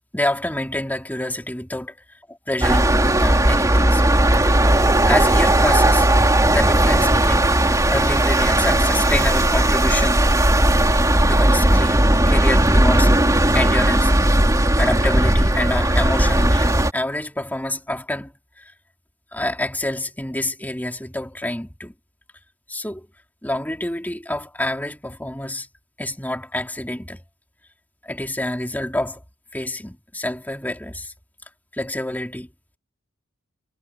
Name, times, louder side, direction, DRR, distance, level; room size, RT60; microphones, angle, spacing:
voice 1, 0.1-2.0 2.3-4.0 4.4-6.1 6.5-7.6 7.9-10.2 11.2-13.2 13.5-14.1 14.8-18.3 18.6-18.7 19.3-21.9 22.7-23.1 23.4-25.7 26.0-27.2 28.0-29.2 29.5-31.1 31.7-32.5, left 1 dB, 10° left, 3.1 m, -27 dB
sound 1, 2.6-16.9, right 1 dB, 15° right, 3.3 m, -17 dB
head